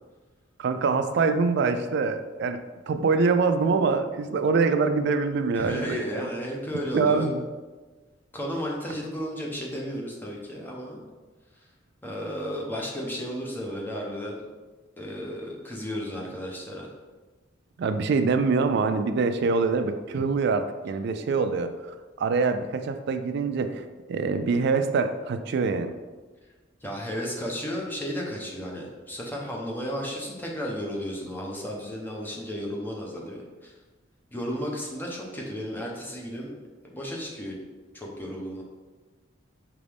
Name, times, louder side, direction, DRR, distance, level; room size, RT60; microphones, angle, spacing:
voice 1, 0.6-6.3 6.9-7.4 17.8-25.9, right 4 dB, 60° right, 9 dB, 0.3 m, -25 dB
voice 2, 5.5-7.3 8.3-11.0 12.0-14.4 15.0-16.9 26.8-33.7 34.3-36.5 36.9-37.6 37.9-38.6, equal, 10° left, -2 dB, 0.7 m, -33 dB
5.1 x 3.0 x 3.4 m, 1.3 s
head